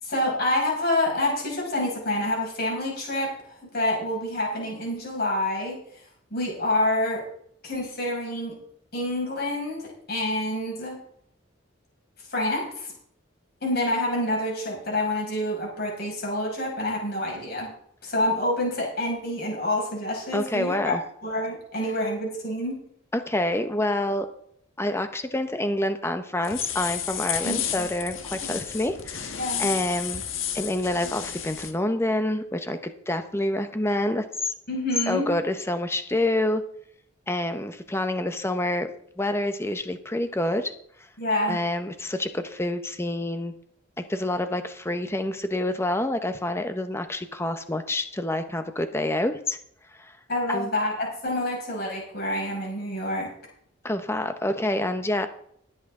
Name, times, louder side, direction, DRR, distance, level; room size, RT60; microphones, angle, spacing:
voice 1, 0.0-6.0 6.3-7.3 7.6-8.6 8.9-11.0 12.3-12.9 13.6-17.7 18.0-22.8 27.4-27.9 28.3-28.5 29.4-29.7 34.7-35.3 41.2-41.6 50.3-53.3, left 1 dB, 55° left, -3 dB, 5.9 m, -27 dB
voice 2, 20.3-21.0 23.1-24.3 24.8-30.2 30.5-34.5 35.1-36.6 37.3-40.7 41.5-43.5 44.1-49.6 50.0-50.1 50.5-50.7 53.8-55.3, left 1 dB, 15° left, 8 dB, 0.9 m, -27 dB
sound 1, 26.4-31.7, left 9 dB, 85° left, 1.5 m, -32 dB
20.5 x 8.2 x 3.7 m, 0.69 s
head